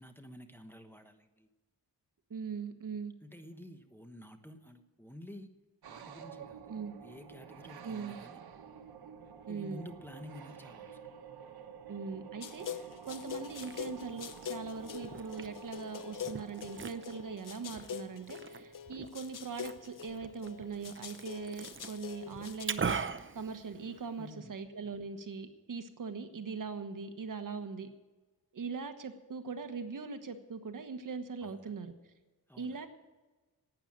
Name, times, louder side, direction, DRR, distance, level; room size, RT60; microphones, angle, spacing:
voice 1, 0.0-1.5 3.2-5.5 5.9-6.7 7.0-8.4 9.5-11.1 24.2-24.5 31.4-31.7 32.5-32.8, left 1 dB, 5° left, 6 dB, 1.1 m, -50 dB
voice 2, 2.3-3.1 6.7-6.9 7.8-8.2 9.5-9.9 11.9-27.9 28.5-31.9 32.6-32.9, right 5 dB, 60° right, 8 dB, 1.3 m, -41 dB
sound 1, 5.8-18.8, right 7 dB, 85° right, 1.2 m, -50 dB
sound 2, 12.4-22.6, left 8 dB, 60° left, 0.9 m, -44 dB
Liquid, 13.3-24.3, right 6 dB, 35° right, 0.7 m, -43 dB
12.0 x 9.2 x 8.8 m, 1.2 s
wide cardioid pair, 90°, 37 cm